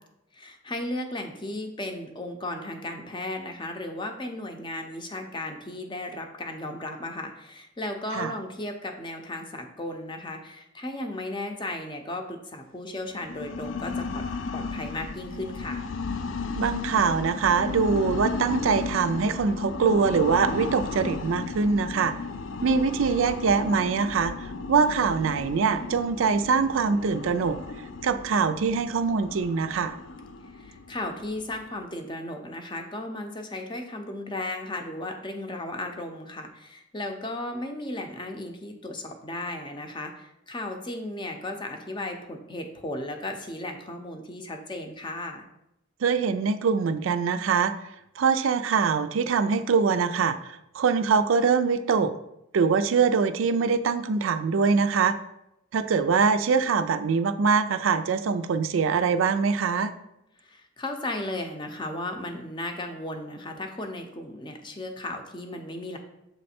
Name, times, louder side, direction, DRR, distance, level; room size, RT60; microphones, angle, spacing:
voice 1, 0.3-14.3 14.5-15.8 30.5-45.5 60.4-66.0, left 1 dB, 25° left, 5 dB, 0.6 m, -35 dB
sound 1, 13.1-31.9, left 4 dB, 70° left, 0.4 m, -35 dB
voice 2, 16.6-22.1 22.6-27.6 28.0-29.9 46.0-47.7 48.2-52.1 52.5-55.2 55.7-59.9, right 5 dB, 85° right, 11 dB, 0.4 m, -23 dB
7.0 x 3.2 x 4.3 m, 0.83 s
head